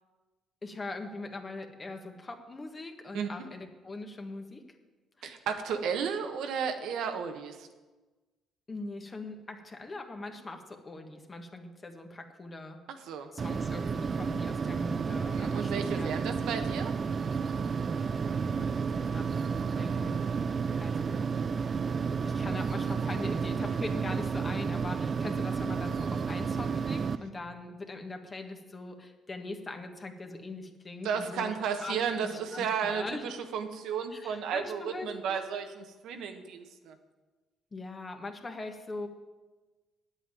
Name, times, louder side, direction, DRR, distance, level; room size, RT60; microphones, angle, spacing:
voice 1, 0.6-4.7 5.2-5.3 8.7-12.8 13.3-16.4 18.3-19.3 19.8-20.3 20.8-21.3 21.9-31.5 31.8-33.2 34.1-35.4 37.7-39.1, left 2 dB, 25° left, 5 dB, 1.5 m, -41 dB
voice 2, 5.2-7.7 13.1-13.3 15.3-16.9 31.0-36.9, right 7 dB, 75° right, 6 dB, 1.2 m, -33 dB
sound 1, 13.4-27.2, right 5 dB, 40° right, 0.5 m, -31 dB
8.9 x 8.1 x 9.1 m, 1.2 s
cardioid pair, 90°, 0 cm